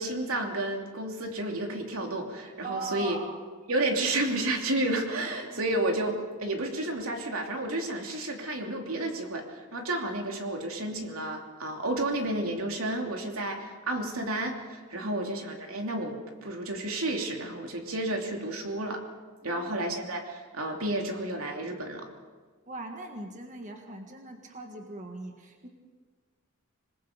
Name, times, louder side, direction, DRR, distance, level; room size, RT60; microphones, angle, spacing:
voice 1, 0.0-3.2 3.7-19.0 19.4-22.1, right 1 dB, 75° right, 2 dB, 3.0 m, -31 dB
voice 2, 2.6-3.4 5.5-5.6 15.0-15.1 19.4-19.6 22.7-25.7, right 2 dB, 35° right, 3 dB, 1.8 m, -40 dB
26.5 x 20.5 x 5.2 m, 1.5 s
head